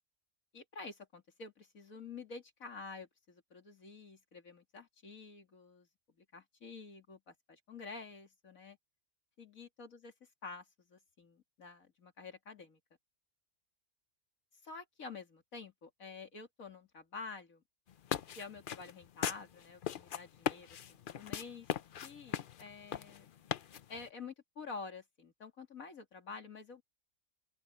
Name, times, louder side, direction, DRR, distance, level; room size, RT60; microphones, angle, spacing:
voice 1, 0.5-5.9 6.2-8.8 9.4-10.1 10.4-12.8 14.6-17.6 18.4-21.7 22.0-23.3 23.9-26.8, left 4 dB, 75° left, 3.0 m, -49 dB
sound 1, 17.9-24.1, left 9 dB, 55° left, 0.6 m, -39 dB
open air
omnidirectional pair, 1.4 m